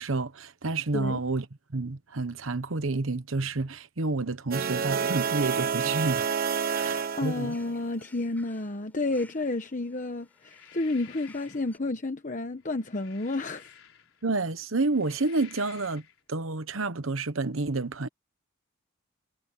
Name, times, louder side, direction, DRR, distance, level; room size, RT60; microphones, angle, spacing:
voice 1, 0.0-1.5 1.7-6.3 6.7-7.5 14.2-16.0 16.3-18.1, right 3 dB, 80° right, 1.1 m, -29 dB
sound 1, 4.5-7.7, right 6 dB, 45° right, 0.7 m, -29 dB
voice 2, 6.6-13.7, left 2 dB, 40° left, 1.0 m, -31 dB
sound 2, 6.7-11.8, left 2 dB, 10° left, 7.2 m, -59 dB
sound 3, 10.3-11.8 12.6-14.3 14.8-16.2, left 9 dB, 85° left, 4.3 m, -52 dB
head